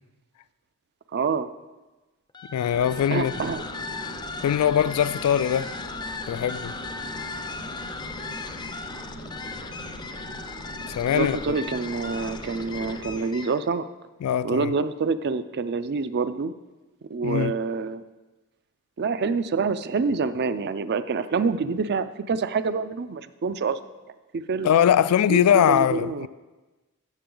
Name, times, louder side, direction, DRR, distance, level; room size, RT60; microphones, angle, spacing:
voice 1, 1.1-1.5 3.1-3.7 6.4-6.5 11.1-13.9 14.4-16.5 17.1-18.0 19.0-23.8 24.3-24.7 25.3-26.3, right 4 dB, 50° right, 0.4 m, -27 dB
sound 1, 2.3-13.7, left 4 dB, 20° left, 0.4 m, -37 dB
voice 2, 2.5-3.3 4.4-5.7 6.3-6.7 11.0-11.4 14.2-14.7 17.2-17.5 24.6-26.3, left 9 dB, 85° left, 0.3 m, -21 dB
sound 2, 2.7-13.2, equal, 80° right, 1.6 m, -41 dB
14.0 x 7.5 x 3.8 m
head